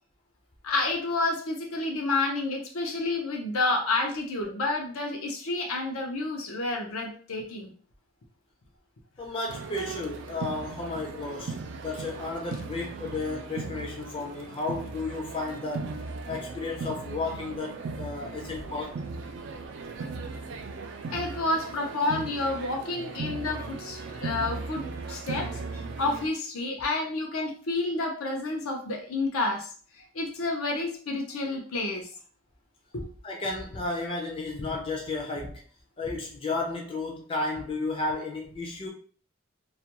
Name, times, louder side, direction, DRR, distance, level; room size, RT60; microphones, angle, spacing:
voice 1, 0.6-7.7 21.1-32.1 32.9-33.1, left 2 dB, 90° left, 0.6 m, -30 dB
voice 2, 9.2-16.0 16.3-19.0 33.2-35.6 36.0-38.9, left 3 dB, 25° left, 0.4 m, -33 dB
sound 1, 9.5-26.3, right 4 dB, 55° right, 0.3 m, -38 dB
2.4 x 2.2 x 2.9 m
head